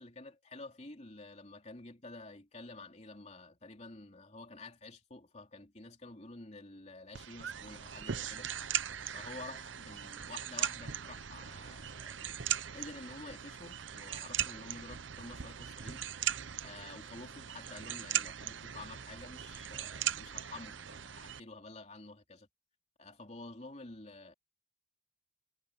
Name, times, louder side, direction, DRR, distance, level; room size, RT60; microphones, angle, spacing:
voice 1, 0.0-8.5 9.1-12.4 12.7-16.1 16.6-22.5 23.0-24.3, left 2 dB, 35° left, 3.2 m, -50 dB
sound 1, 7.1-21.4, right 10 dB, 80° right, 0.8 m, -39 dB
head